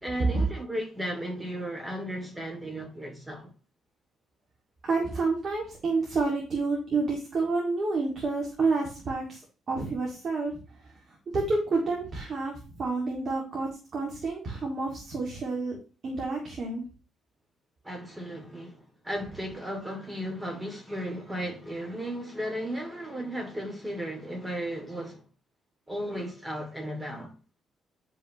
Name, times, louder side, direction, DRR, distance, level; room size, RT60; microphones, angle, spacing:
voice 1, 0.0-3.5 17.8-25.2 25.9-27.3, equal, 15° right, 2.8 m, -35 dB
voice 2, 4.8-9.4 9.7-15.8 16.0-16.8, right 3 dB, 45° right, 2.4 m, -29 dB
10.0 x 5.5 x 3.2 m
cardioid pair, 100°, 0 cm